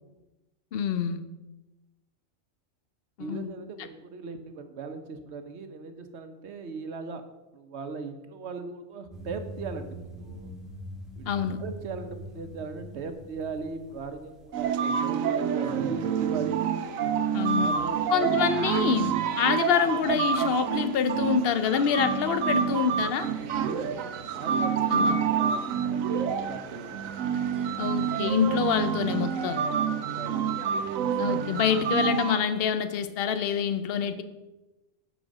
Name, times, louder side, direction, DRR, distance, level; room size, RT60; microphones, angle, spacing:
voice 1, 0.7-1.2 3.2-3.5 11.3-11.6 17.3-17.7 18.1-23.3 24.9-25.2 27.8-29.6 31.2-34.2, left 7 dB, 55° left, 11 dB, 0.8 m, -26 dB
voice 2, 3.2-7.2 7.5-10.6 11.2-11.3 11.6-16.6 17.6-18.3 23.6-27.0 29.9-30.6, right 4 dB, 60° right, 8 dB, 1.1 m, -39 dB
sound 1, 9.1-14.6, equal, ahead, 1.7 m, -42 dB
sound 2, 14.5-32.4, right 7 dB, 85° right, 1.1 m, -28 dB
10.0 x 4.4 x 6.4 m, 1.1 s
omnidirectional pair, 1.4 m